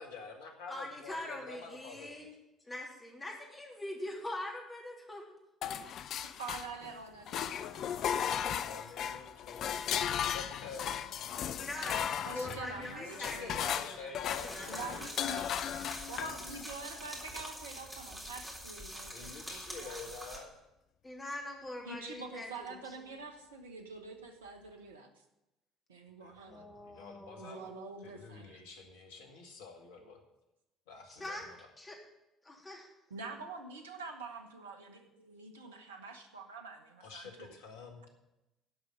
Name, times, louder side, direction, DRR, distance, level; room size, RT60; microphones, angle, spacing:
voice 1, 0.0-2.3 8.3-9.8 10.3-10.9 12.7-15.1 19.1-20.5 26.2-27.7 28.0-30.2 30.9-31.6 37.0-38.1, left 4 dB, 70° left, 3 dB, 1.9 m, -48 dB
voice 2, 0.7-2.3 2.6-5.2 6.1-6.3 8.1-8.7 11.6-13.6 14.0-14.7 15.1-15.5 21.0-22.8 26.5-27.9 31.1-31.5 31.8-32.0 32.4-32.9, left 1 dB, 20° left, -1 dB, 3.4 m, -43 dB
sound 1, 5.6-6.9 7.3-16.7, left 9 dB, 50° left, 0.5 m, -36 dB
voice 3, 6.4-8.1 12.2-13.0 13.3-13.8 14.7-15.5 16.1-20.2 21.8-25.1 25.9-26.6 27.4-28.6 33.1-37.6, right 4 dB, 80° right, 5 dB, 1.2 m, -46 dB
sound 2, 14.3-20.4, equal, 10° right, 3.9 m, -45 dB
12.0 x 5.5 x 9.0 m, 0.95 s
figure-of-eight pair, 55°, 0 cm